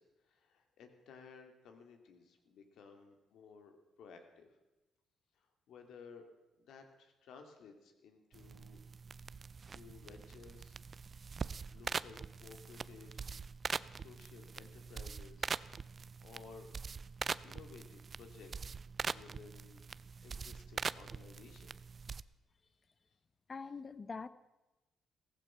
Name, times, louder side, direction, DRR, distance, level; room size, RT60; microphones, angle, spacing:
voice 1, 0.0-3.7 4.0-4.5 5.4-6.2 6.6-8.8 9.7-10.8 11.7-13.3 13.9-15.9 16.2-16.7 17.4-18.8 19.0-19.8 20.2-21.7, left 5 dB, 75° left, 5 dB, 2.4 m, -56 dB
sound 1, 8.3-22.2, right 5 dB, 40° right, 0.4 m, -43 dB
voice 2, 23.5-24.3, left 4 dB, 35° left, 14 dB, 0.9 m, -43 dB
15.5 x 15.5 x 5.8 m, 1.0 s
cardioid pair, 90°, 0 cm